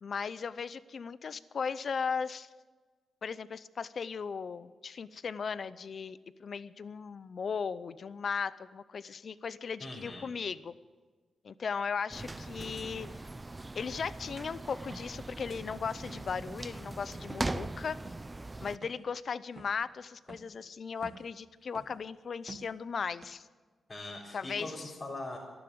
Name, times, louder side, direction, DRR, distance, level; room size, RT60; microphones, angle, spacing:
voice 1, 0.0-2.5 3.2-10.7 11.4-13.1 13.8-18.0 18.6-23.5 24.3-24.9, left 6 dB, 55° left, 16 dB, 0.6 m, -37 dB
voice 2, 9.8-10.3 23.9-25.4, left 2 dB, 30° left, -8 dB, 4.2 m, -41 dB
sound 1, 12.1-18.8, right 2 dB, 20° right, 0.5 m, -40 dB
sound 2, 14.9-15.1 15.7-16.1 16.4-16.7 17.3-17.5 18.0-18.3 18.8-19.2 19.6-19.8 20.3-20.5 20.9-21.4 21.7-22.1 22.5-22.8 23.2-23.3, right 3 dB, 35° right, 1.2 m, -50 dB
13.5 x 12.0 x 8.6 m, 1.4 s
cardioid pair, 100°, 0 cm